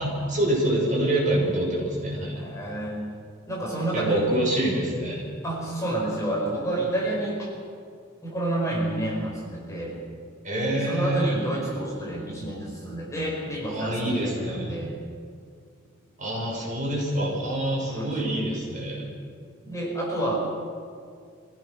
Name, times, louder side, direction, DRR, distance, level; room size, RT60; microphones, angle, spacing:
voice 1, 0.0-2.4 3.9-5.3 10.4-11.4 13.6-14.7 16.2-19.0, right 1 dB, 40° right, -3 dB, 6.4 m, -26 dB
voice 2, 2.4-3.0 3.5-4.3 5.4-7.5 8.2-10.0 10.5-14.9 17.8-18.3 19.6-20.3, right 1 dB, 15° left, -4 dB, 5.1 m, -29 dB
25.5 x 16.5 x 6.4 m, 2.2 s
head